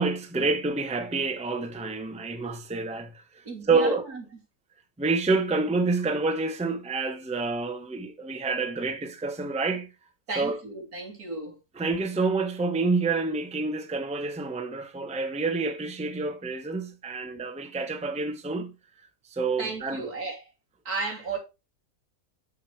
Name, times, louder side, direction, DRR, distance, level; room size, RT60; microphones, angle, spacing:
voice 1, 0.0-3.1 3.7-4.1 5.0-9.9 10.4-10.6 11.8-18.7 19.3-20.0, right 3 dB, 5° right, 0.8 m, -28 dB
voice 2, 3.4-4.2 10.3-11.6 19.6-20.4 20.8-21.4, right 3 dB, 80° right, 3.5 m, -34 dB
9.3 x 6.2 x 3.3 m
omnidirectional pair, 1.6 m